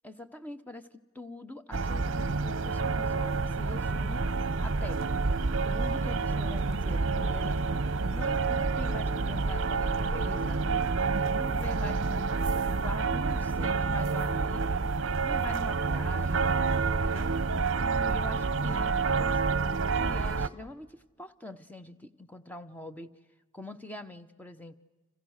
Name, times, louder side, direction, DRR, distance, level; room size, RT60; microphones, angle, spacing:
voice 1, 0.0-0.9 1.1-4.3 4.6-5.1 5.6-7.6 8.1-10.9 11.3-12.3 12.8-14.8 15.2-16.5 16.9-17.3 17.7-19.6 19.9-23.1 23.5-24.8, left 2 dB, 5° left, 10 dB, 0.9 m, -44 dB
sound 1, 1.7-20.5, right 4 dB, 55° right, 0.8 m, -28 dB
30.0 x 27.0 x 6.5 m, 1.2 s
head